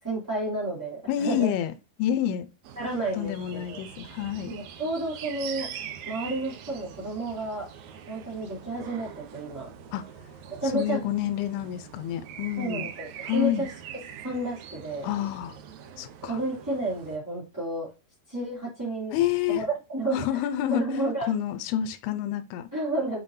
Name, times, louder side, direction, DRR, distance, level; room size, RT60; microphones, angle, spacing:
voice 1, 0.0-1.5 2.8-3.8 4.5-5.7 6.0-7.7 8.1-9.7 10.6-11.0 12.6-13.7 14.2-15.1 16.3-17.9 18.3-19.1 19.5-20.2 20.7-21.3 22.7-23.2, right 2 dB, 5° right, 2.7 m, -31 dB
voice 2, 1.1-1.7 2.0-2.5 3.1-4.6 9.9-10.0 10.7-12.9 13.2-13.7 15.0-15.6 16.0-16.4 19.1-19.6 20.1-20.9 21.3-22.6, left 11 dB, 85° left, 2.8 m, -28 dB
sound 1, 2.6-17.2, right 8 dB, 80° right, 1.6 m, -43 dB
7.0 x 6.2 x 2.7 m
omnidirectional pair, 4.6 m